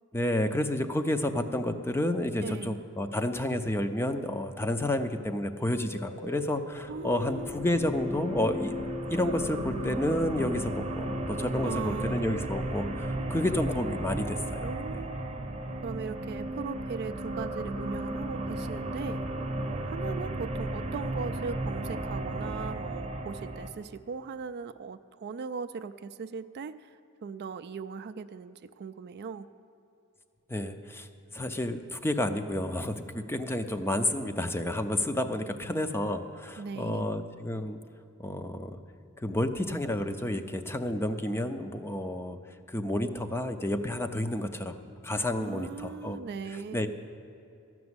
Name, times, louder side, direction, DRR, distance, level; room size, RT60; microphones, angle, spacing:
voice 1, 0.1-8.8 9.1-14.7 30.5-31.1 31.3-37.8 38.2-38.8 39.2-42.4 42.7-46.2 46.7-46.9, left 1 dB, 10° left, 8 dB, 0.5 m, -30 dB
voice 2, 2.4-2.8 6.9-7.5 11.6-12.3 14.6-15.2 15.8-19.2 19.7-29.5 36.6-37.1 45.4-46.9, right 5 dB, 50° right, 11 dB, 0.4 m, -39 dB
sound 1, 5.7-13.0, left 4 dB, 70° left, 1.4 m, -42 dB
sound 2, 6.7-23.7, right 1 dB, 30° right, 0.8 m, -34 dB
13.0 x 6.1 x 9.6 m, 2.7 s
head